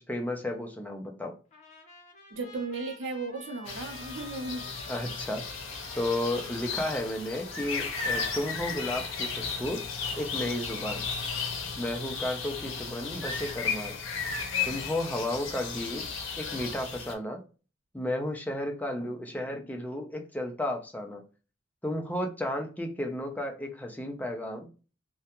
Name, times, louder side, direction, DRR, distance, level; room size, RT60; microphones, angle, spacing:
voice 1, 0.0-1.3 4.9-5.5 6.0-9.8 10.2-11.0 11.8-14.0 14.7-16.1 16.4-17.4 17.9-21.2 21.8-24.7, left 1 dB, 10° left, 3 dB, 0.4 m, -33 dB
Trumpet, 1.5-9.2, left 2 dB, 35° left, 0.8 m, -51 dB
voice 2, 2.3-4.7, right 3 dB, 65° right, 4 dB, 0.6 m, -35 dB
sound 1, 3.6-17.1, left 5 dB, 70° left, 0.6 m, -35 dB
2.4 x 2.2 x 2.8 m, 0.35 s
head